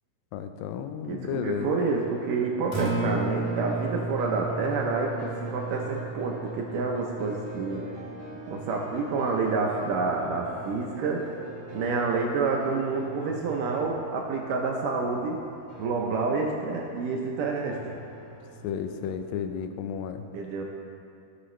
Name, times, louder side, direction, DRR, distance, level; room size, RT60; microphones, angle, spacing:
voice 1, 0.3-1.7 18.6-20.2, left 8 dB, 80° left, 7 dB, 2.1 m, -32 dB
voice 2, 1.1-7.8 8.5-11.2 11.7-15.4 15.8-17.8 20.3-20.6, right 4 dB, 75° right, 0 dB, 2.0 m, -28 dB
sound 1, 1.8-19.4, right 1 dB, 50° right, 2.3 m, -43 dB
Acoustic guitar, 2.6-10.8, right 2 dB, 35° right, 0.6 m, -35 dB
16.5 x 6.9 x 3.2 m, 2.6 s
omnidirectional pair, 4.6 m